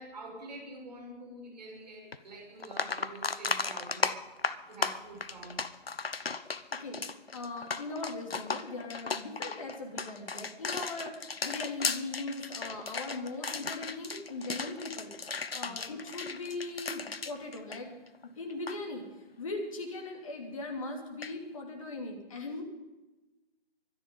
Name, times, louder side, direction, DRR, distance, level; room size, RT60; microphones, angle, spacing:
voice 1, 0.0-4.2 4.7-5.6 15.6-15.8, right 2 dB, 40° right, -1 dB, 6.3 m, -46 dB
sound 1, 2.1-2.2 2.6-18.2 18.5-18.8 21.2-21.3, left 4 dB, 65° left, 0.9 m, -35 dB
voice 2, 6.2-17.9 18.2-19.0 19.4-22.6, left 2 dB, 30° left, 1 dB, 2.8 m, -40 dB
24.5 x 10.0 x 5.3 m, 1.1 s
figure-of-eight pair, 150°, 31 cm